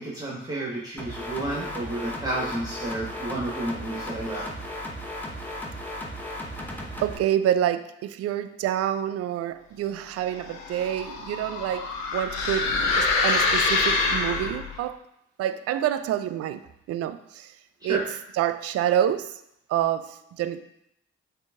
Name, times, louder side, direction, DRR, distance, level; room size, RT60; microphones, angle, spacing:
voice 1, 0.0-4.5 17.8-18.0, right 1 dB, 10° right, 1.3 m, -31 dB
sound 1, 1.0-7.2, equal, 5° left, 1.0 m, -36 dB
voice 2, 7.0-15.0 15.4-16.6 16.9-17.5 17.8-19.3 19.7-20.6, right 11 dB, 50° right, 0.4 m, -27 dB
sound 2, 10.3-14.8, left 3 dB, 85° left, 0.7 m, -25 dB
7.3 x 2.7 x 2.4 m
hypercardioid pair, 45°, 30 cm